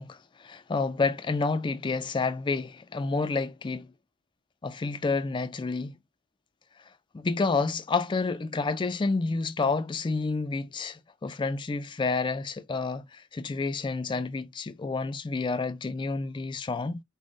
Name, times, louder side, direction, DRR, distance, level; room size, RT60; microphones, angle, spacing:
voice 1, 0.0-3.9 4.6-5.9 7.1-17.0, left 4 dB, 20° left, 0.3 m, -29 dB
3.7 x 2.1 x 3.5 m
head